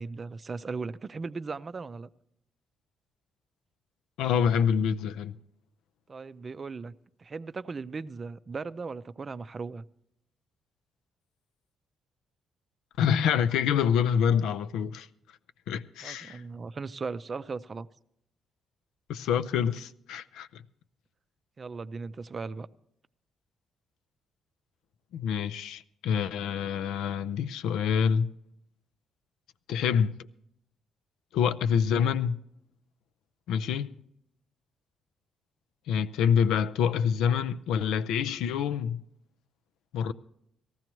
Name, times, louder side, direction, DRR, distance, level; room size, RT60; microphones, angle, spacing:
voice 1, 0.0-2.1 6.1-6.9 7.2-9.9 16.0-17.9 21.6-22.7, right 4 dB, 35° right, 0.4 m, -37 dB
voice 2, 4.2-5.4 13.0-15.1 15.7-16.4 19.1-20.6 25.1-28.3 29.7-30.3 31.3-32.4 33.5-33.9 35.9-39.0 39.9-40.1, left 7 dB, 85° left, 0.4 m, -26 dB
18.5 x 14.5 x 3.0 m
cardioid pair, 90°, 0 cm